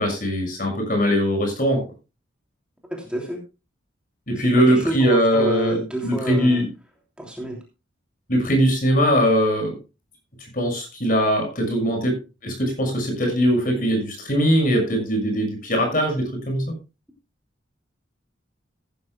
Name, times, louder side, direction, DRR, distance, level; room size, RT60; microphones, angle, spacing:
voice 1, 0.0-1.8 4.3-6.7 8.3-9.7 10.5-16.6, equal, 45° left, 4 dB, 6.2 m, -21 dB
voice 2, 2.9-3.4 4.6-6.6 7.2-7.6, right 1 dB, 5° right, 0 dB, 2.9 m, -28 dB
15.0 x 14.0 x 2.2 m, 0.27 s
head